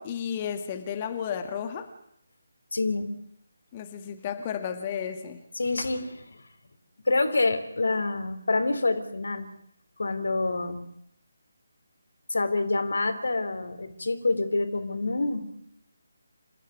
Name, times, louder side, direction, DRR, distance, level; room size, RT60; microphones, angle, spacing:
voice 1, 0.0-1.9 3.7-5.4, left 8 dB, 25° left, 7 dB, 1.9 m, -33 dB
voice 2, 2.7-3.1 5.6-6.3 7.1-9.5 10.0-10.8 12.3-15.4, left 3 dB, 60° left, 9 dB, 3.5 m, -27 dB
28.0 x 14.5 x 9.5 m, 0.74 s
figure-of-eight pair, 150°, 0 cm